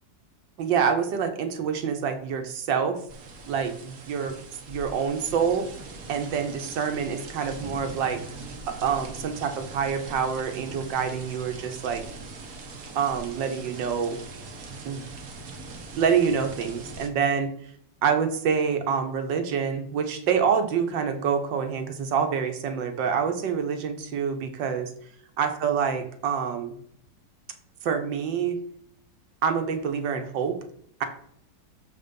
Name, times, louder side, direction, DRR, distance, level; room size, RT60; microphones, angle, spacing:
voice 1, 0.6-3.0 3.5-4.3 4.7-5.7 6.1-8.2 8.7-12.0 12.9-14.2 14.8-15.1 15.9-17.5 18.0-24.9 25.4-26.7 27.8-28.6 29.4-30.6, right 7 dB, 80° right, 6 dB, 1.6 m, -26 dB
sound 1, 3.1-17.1, right 3 dB, 55° right, 1.3 m, -41 dB
6.6 x 4.1 x 5.2 m, 0.67 s
omnidirectional pair, 2.0 m